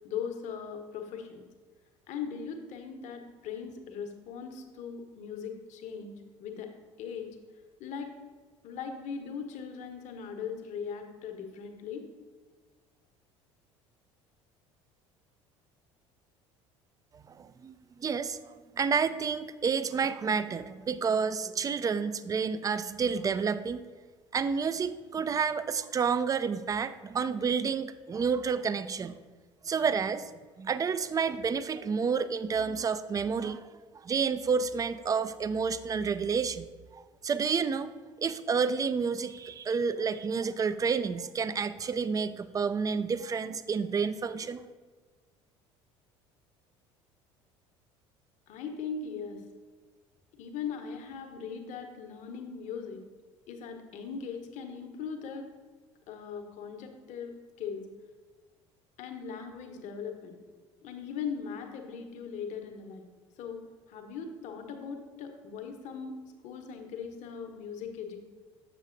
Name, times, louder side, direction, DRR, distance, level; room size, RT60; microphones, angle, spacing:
voice 1, 0.0-1.4 2.1-6.1 6.4-6.7 7.0-7.4 7.8-8.1 8.6-12.0 48.5-49.4 50.4-53.0 53.5-55.5 56.1-57.8 59.0-60.4 60.8-63.0 63.4-63.6 63.9-66.1 66.4-68.2, left 6 dB, 55° left, 4 dB, 1.0 m, -39 dB
voice 2, 17.1-23.8 24.3-29.2 29.6-30.3 30.6-33.7 34.0-36.7 36.9-37.9 38.2-44.6, right 5 dB, 25° right, 13 dB, 0.3 m, -30 dB
7.1 x 6.7 x 2.5 m, 1.4 s
hypercardioid pair, 65°, 15 cm